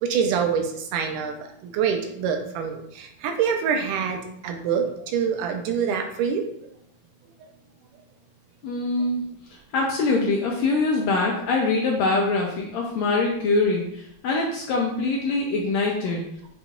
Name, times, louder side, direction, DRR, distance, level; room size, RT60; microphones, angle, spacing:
voice 1, 0.0-4.2 4.4-6.4, right 7 dB, 90° right, 4 dB, 2.1 m, -25 dB
voice 2, 8.6-9.2 9.7-16.2, left 3 dB, 80° left, -1 dB, 1.6 m, -23 dB
7.2 x 2.9 x 2.4 m, 0.73 s
omnidirectional pair, 3.6 m